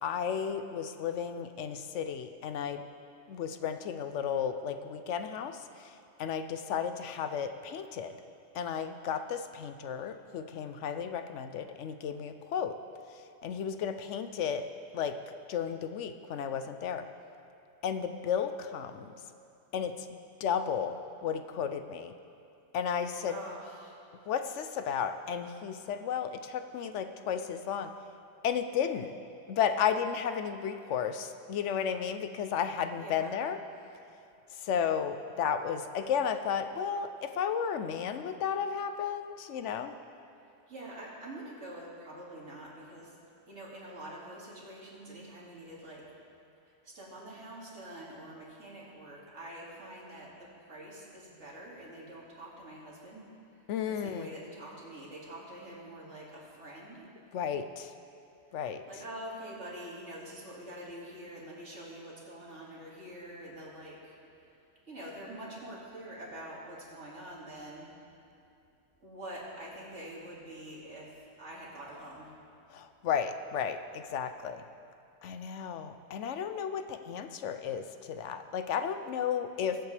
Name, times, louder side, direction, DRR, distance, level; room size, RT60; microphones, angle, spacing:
voice 1, 0.0-2.8 3.3-8.1 8.5-12.8 13.1-14.7 14.9-17.0 17.8-19.1 19.7-22.1 22.7-23.4 24.3-27.9 28.4-29.1 29.5-33.6 34.5-39.9 53.7-54.3 57.3-57.9 58.5-58.8 72.7-74.6 75.2-79.8, left 7 dB, 75° left, 9 dB, 0.9 m, -33 dB
voice 2, 23.3-24.0 33.0-33.4 40.7-43.1 43.5-46.1 46.7-53.3 53.9-57.1 58.9-64.6 64.9-67.9 69.0-72.4, right 1 dB, 70° right, -5 dB, 2.6 m, -46 dB
21.5 x 8.0 x 3.3 m, 2.6 s
omnidirectional pair, 1.3 m